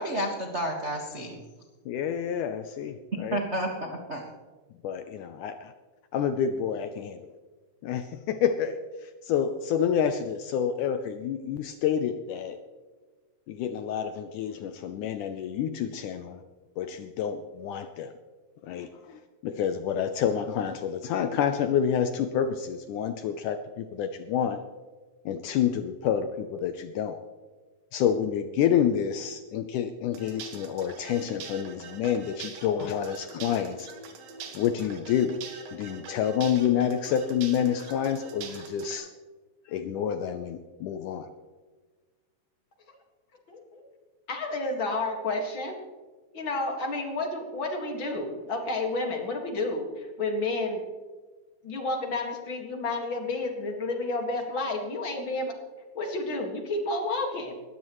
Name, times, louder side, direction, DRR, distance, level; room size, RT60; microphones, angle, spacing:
voice 1, 0.0-1.4 3.3-4.2, right 1 dB, 55° right, 0 dB, 0.7 m, -31 dB
voice 2, 1.9-3.4 4.8-5.7 6.1-7.2 7.8-12.6 13.5-16.4 16.8-18.1 18.6-24.6 25.3-27.2 27.9-33.9 34.5-35.4 35.7-39.1 39.7-41.3, left 8 dB, 75° left, 9 dB, 2.0 m, -28 dB
sound 1, 30.1-38.9, right 5 dB, 80° right, 3.4 m, -44 dB
voice 3, 43.5-43.8 44.3-45.8 46.3-50.8 51.6-55.6 55.9-57.5, left 2 dB, 40° left, 2 dB, 2.2 m, -31 dB
20.5 x 15.0 x 3.1 m, 1.4 s
omnidirectional pair, 4.1 m